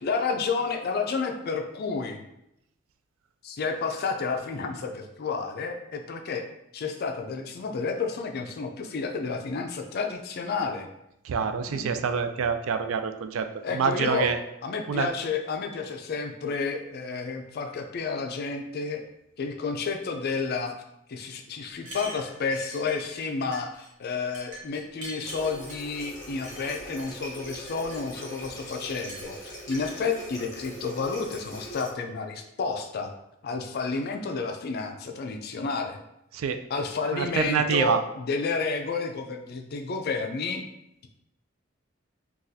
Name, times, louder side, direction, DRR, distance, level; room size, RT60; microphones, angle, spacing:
voice 1, 0.0-2.2 3.4-6.4 6.7-10.9 11.7-11.9 13.6-14.3 14.6-19.0 19.4-20.7 21.1-33.1 33.4-36.0 36.7-40.6, left 4 dB, 50° left, 5 dB, 0.4 m, -31 dB
voice 2, 11.2-14.4 14.9-15.1 36.3-36.6 37.1-38.0, right 6 dB, 80° right, 9 dB, 0.3 m, -26 dB
sound 1, 21.8-23.3 23.5-23.9 24.3-25.9 26.4-27.1 27.5-28.6 29.1-30.0, equal, 60° right, 1.1 m, -43 dB
Water tap faucet, 25.2-31.9, equal, 15° left, 1.1 m, -42 dB
4.0 x 2.3 x 2.6 m, 0.82 s
head